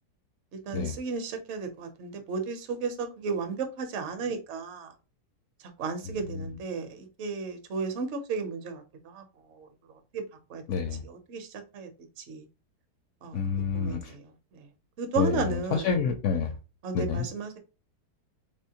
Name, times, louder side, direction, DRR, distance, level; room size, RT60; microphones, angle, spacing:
voice 1, 0.7-4.9 5.8-8.8 9.1-9.2 9.5-9.7 10.1-10.2 10.5-10.6 11.0-11.9 12.2-12.4 13.2-13.4 13.7-14.7 15.0-15.9 16.8-17.6, right 4 dB, 55° right, 0.9 m, -34 dB
voice 2, 10.7-11.0 13.3-14.1 15.2-16.6 16.9-17.3, left 6 dB, 70° left, 0.7 m, -28 dB
3.4 x 3.0 x 2.8 m
omnidirectional pair, 1.7 m